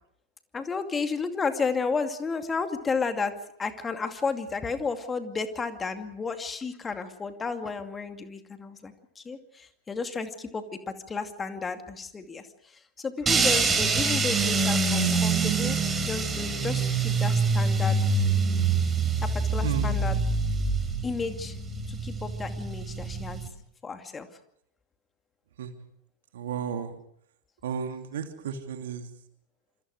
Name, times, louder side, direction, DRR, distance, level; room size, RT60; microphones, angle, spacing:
voice 1, 0.5-18.0 19.2-20.2 21.0-21.6 21.9-23.4 23.8-24.3, left 4 dB, 15° left, 7 dB, 2.5 m, -32 dB
sound 1, 13.3-23.5, right 4 dB, 15° right, 5.2 m, -25 dB
voice 2, 19.6-20.0 25.6-25.7 26.3-26.9 27.6-29.1, right 7 dB, 60° right, 6 dB, 2.8 m, -33 dB
27.5 x 27.5 x 5.0 m, 0.70 s
figure-of-eight pair, 90°, 0 cm